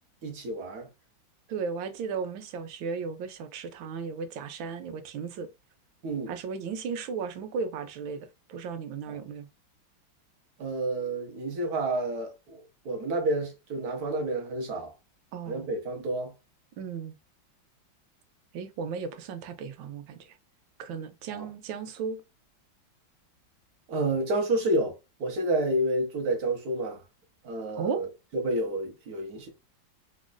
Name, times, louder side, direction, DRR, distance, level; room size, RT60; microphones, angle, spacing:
voice 1, 0.2-0.9 6.0-6.3 9.1-9.2 10.6-14.9 15.5-16.3 21.3-21.5 23.9-24.9 25.2-27.0 27.4-29.5, right 2 dB, 60° right, 1.3 m, -29 dB
voice 2, 1.5-5.5 6.3-9.5 15.3-15.7 16.8-17.1 18.5-20.4 20.8-22.2 27.8-28.0, right 5 dB, 85° right, 1.4 m, -35 dB
5.0 x 2.5 x 2.2 m
omnidirectional pair, 2.1 m